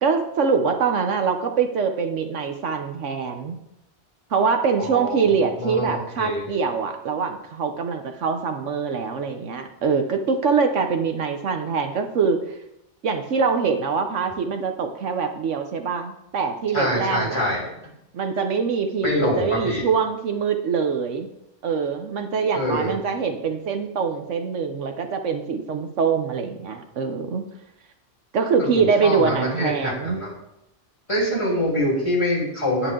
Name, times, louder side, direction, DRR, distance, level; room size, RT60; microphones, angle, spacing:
voice 1, 0.0-3.6 4.3-12.4 13.0-17.5 18.1-21.3 21.6-27.4 28.3-30.2, right 5 dB, 75° right, 6 dB, 1.2 m, -24 dB
voice 2, 4.8-6.5 16.7-17.6 19.0-19.8 22.5-23.0 28.6-30.3 31.1-32.9, left 1 dB, 25° left, -5 dB, 3.6 m, -25 dB
10.0 x 8.6 x 3.8 m, 0.84 s
omnidirectional pair, 1.3 m